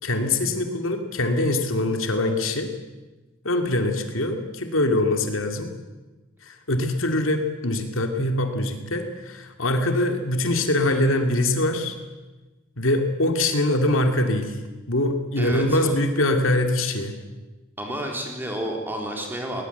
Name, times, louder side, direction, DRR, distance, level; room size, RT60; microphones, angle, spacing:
voice 1, 0.0-2.7 3.4-5.7 6.5-12.0 12.8-14.6 14.9-17.2, left 1 dB, 75° left, 6 dB, 2.4 m, -23 dB
voice 2, 15.4-16.0 17.8-19.6, right 1 dB, 10° right, 1 dB, 3.9 m, -30 dB
20.0 x 19.5 x 8.1 m, 1.2 s
head